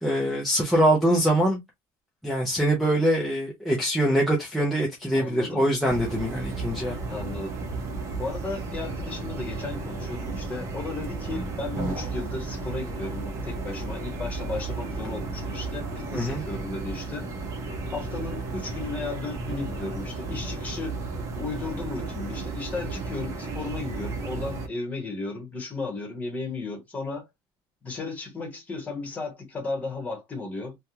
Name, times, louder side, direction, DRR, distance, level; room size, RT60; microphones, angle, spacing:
voice 1, 0.0-1.6 2.2-7.0 16.1-16.4, right 1 dB, ahead, 0.6 m, -23 dB
voice 2, 5.1-5.6 7.1-7.6 8.2-17.3 17.9-21.0 21.3-27.3 27.8-30.8, left 3 dB, 15° left, 1.2 m, -34 dB
sound 1, 5.9-24.7, right 3 dB, 35° right, 0.8 m, -33 dB
3.3 x 2.3 x 2.8 m
cardioid pair, 175°, 9 cm